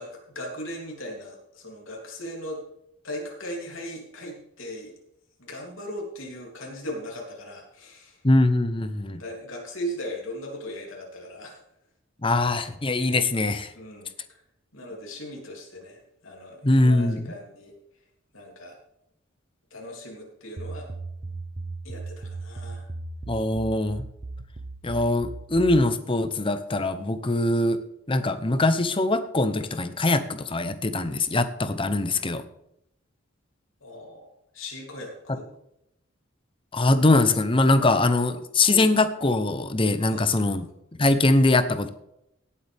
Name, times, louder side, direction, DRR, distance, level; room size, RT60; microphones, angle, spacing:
voice 1, 0.0-2.6 3.0-4.9 5.4-8.2 9.1-11.6 13.7-14.4 14.7-17.7 18.3-18.8 19.7-20.9 21.8-22.8 33.8-35.5 37.8-37.9 38.6-38.9 40.0-40.7, equal, 75° left, -1 dB, 3.1 m, -38 dB
voice 2, 8.2-9.2 12.2-13.7 16.6-17.2 23.3-24.0 24.8-27.8 28.1-32.4 35.3-35.4 36.7-40.7 41.0-41.9, left 2 dB, 25° left, 11 dB, 0.8 m, -22 dB
sound 1, 20.6-25.9, right 3 dB, 35° right, 0.8 m, -37 dB
17.5 x 8.7 x 3.5 m, 0.80 s
head